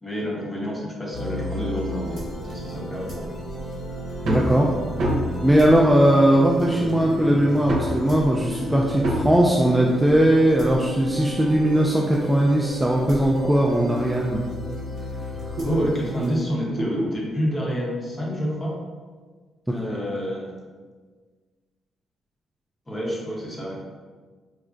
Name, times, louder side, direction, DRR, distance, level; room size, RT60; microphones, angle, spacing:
voice 1, 0.0-3.3 15.6-18.8 19.7-20.5 22.9-23.8, equal, 20° left, -3 dB, 0.9 m, -28 dB
sound 1, 1.1-16.4, equal, 60° left, 1.5 m, -33 dB
voice 2, 4.2-4.7 5.4-14.4, right 1 dB, 5° right, -2 dB, 0.3 m, -19 dB
sound 2, 4.2-4.5 5.0-5.4 6.4-6.5 7.7-8.0 9.0-9.4 10.7-12.4 13.0-13.1 13.7-13.9 14.1-14.2 14.6-15.9 16.8-17.1 18.4-18.5, equal, 75° right, 0.7 m, -27 dB
4.6 x 2.1 x 2.5 m, 1.5 s
cardioid pair, 90°, 0 cm